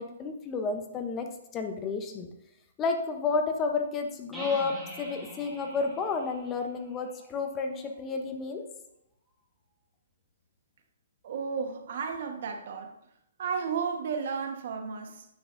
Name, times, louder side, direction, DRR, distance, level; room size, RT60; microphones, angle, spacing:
voice 1, 0.0-2.3 2.8-8.6, left 4 dB, 20° left, 5 dB, 0.7 m, -31 dB
sound 1, 4.3-8.0, right 1 dB, ahead, 1.8 m, -45 dB
voice 2, 11.2-12.9 13.4-15.3, right 6 dB, 55° right, 6 dB, 1.2 m, -33 dB
9.7 x 8.4 x 2.6 m, 0.85 s
hypercardioid pair, 155°, 0 cm